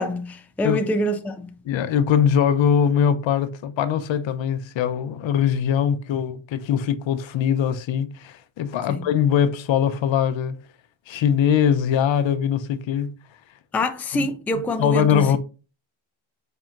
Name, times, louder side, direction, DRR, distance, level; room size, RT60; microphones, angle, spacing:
voice 1, 0.0-1.5 8.9-9.1 13.7-15.4, left 1 dB, 5° left, 0.3 m, -25 dB
voice 2, 1.6-10.6 11.1-13.1 14.1-14.3 14.8-15.4, left 8 dB, 70° left, 0.6 m, -21 dB
5.1 x 2.8 x 2.4 m
cardioid pair, 95°, 48 cm